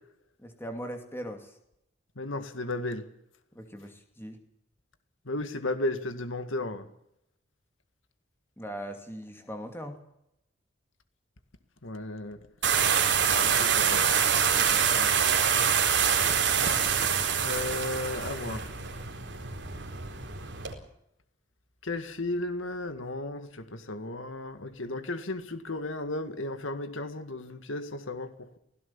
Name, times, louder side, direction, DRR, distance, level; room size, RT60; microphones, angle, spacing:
voice 1, 0.4-1.5 3.5-4.4 8.6-10.0 14.5-15.3, equal, 10° left, 2.6 m, -40 dB
voice 2, 2.2-3.1 5.3-6.9 11.8-12.4 13.2-14.1 17.4-18.7 21.8-28.6, left 2 dB, 80° left, 1.9 m, -34 dB
sound 1, 12.6-20.7, right 7 dB, 60° right, 4.2 m, -25 dB
23.5 x 17.5 x 7.2 m
head